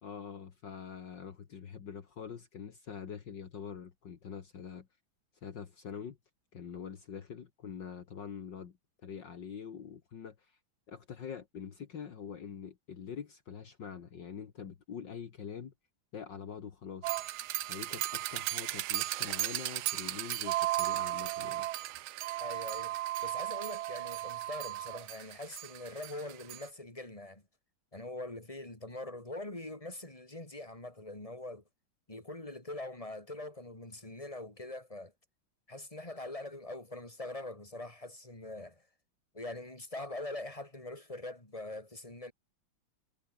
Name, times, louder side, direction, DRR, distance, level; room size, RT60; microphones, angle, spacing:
voice 1, 0.0-4.9 5.4-6.2 6.5-8.8 9.0-10.6 10.9-15.7 16.1-17.1 17.7-21.7, left 7 dB, 60° left, 2.3 m, -44 dB
sound 1, 17.0-26.7, right 15 dB, 90° right, 1.5 m, -35 dB
voice 2, 22.4-22.9 23.2-27.4 27.9-31.6 32.1-35.1 35.7-38.8 39.3-42.3, left 2 dB, 15° left, 4.5 m, -43 dB
omnidirectional pair, 2.2 m